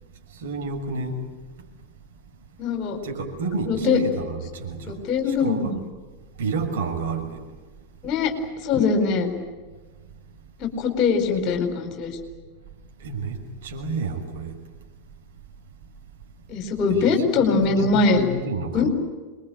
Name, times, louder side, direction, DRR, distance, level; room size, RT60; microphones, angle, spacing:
voice 1, 0.4-1.2 3.0-5.0 5.3-5.8 6.4-7.4 13.0-14.6 16.9-17.3 17.7-18.9, right 3 dB, 55° right, 6.3 m, -30 dB
voice 2, 2.6-3.0 3.6-4.0 4.8-5.8 8.0-8.3 8.6-9.3 10.6-12.2 16.5-18.2 18.7-18.9, left 4 dB, 35° left, 4.8 m, -22 dB
27.0 x 22.0 x 8.9 m
figure-of-eight pair, 90°, 0 cm